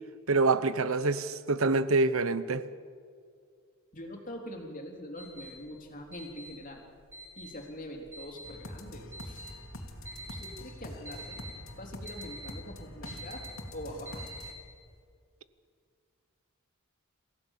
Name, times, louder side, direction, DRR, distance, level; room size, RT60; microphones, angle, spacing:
voice 1, 0.3-2.7, right 3 dB, 75° right, 1.0 m, -26 dB
voice 2, 3.9-6.8 7.4-9.4 10.3-11.4 11.7-13.4 13.7-14.3, left 1 dB, 40° left, 3.7 m, -43 dB
sound 1, 5.2-14.9, right 1 dB, 10° right, 6.1 m, -47 dB
sound 2, 8.4-14.5, left 1 dB, 65° left, 3.0 m, -45 dB
27.5 x 15.5 x 7.4 m
head